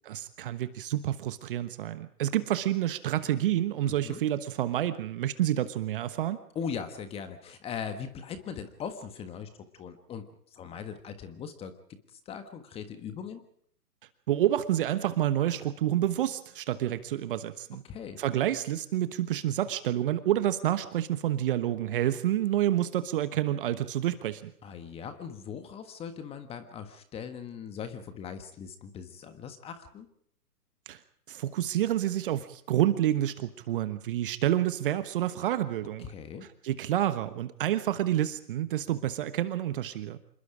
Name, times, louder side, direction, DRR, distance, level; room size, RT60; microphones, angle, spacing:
voice 1, 0.1-6.4 14.3-17.8 18.2-24.5 30.9-31.0 31.3-36.0 36.6-40.2, right 12 dB, 35° right, 12 dB, 1.2 m, -28 dB
voice 2, 3.8-4.2 6.5-10.2 10.5-11.7 12.1-13.4 17.8-18.2 24.6-30.1 36.0-36.4, left 7 dB, 10° left, 9 dB, 1.4 m, -40 dB
27.0 x 21.5 x 5.1 m, 0.65 s
figure-of-eight pair, 135°, 48 cm